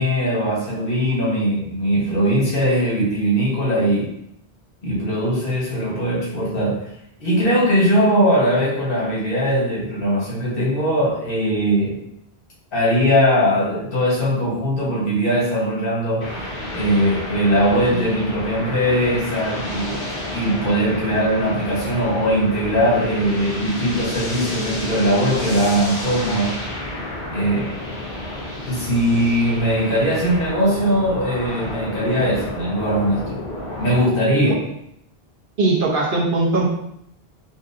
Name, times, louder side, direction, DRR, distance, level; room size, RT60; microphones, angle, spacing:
voice 1, 0.0-4.1 4.8-6.9 7.2-12.0 12.7-16.3 16.7-26.6 27.3-27.7 28.6-33.4 33.8-34.5, equal, 60° left, -7 dB, 1.3 m, -20 dB
sound 1, 16.2-34.0, left 1 dB, 80° left, 1.2 m, -30 dB
voice 2, 35.6-36.6, right 2 dB, 60° right, -3 dB, 0.9 m, -19 dB
4.1 x 2.6 x 2.5 m, 0.77 s
omnidirectional pair, 1.1 m